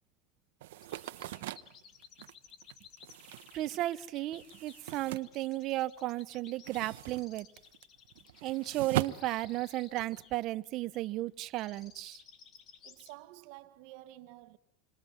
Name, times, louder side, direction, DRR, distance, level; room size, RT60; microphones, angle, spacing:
sound 1, 0.6-6.0 6.3-10.2, right 15 dB, 85° right, 1.0 m, -41 dB
sound 2, 0.8-13.1, left 7 dB, 35° left, 3.7 m, -57 dB
voice 1, 3.5-7.5 8.4-12.2, right 16 dB, 45° right, 1.1 m, -34 dB
voice 2, 12.8-14.6, right 16 dB, 65° right, 1.6 m, -51 dB
27.5 x 26.0 x 7.5 m
supercardioid pair, 145°, 0 cm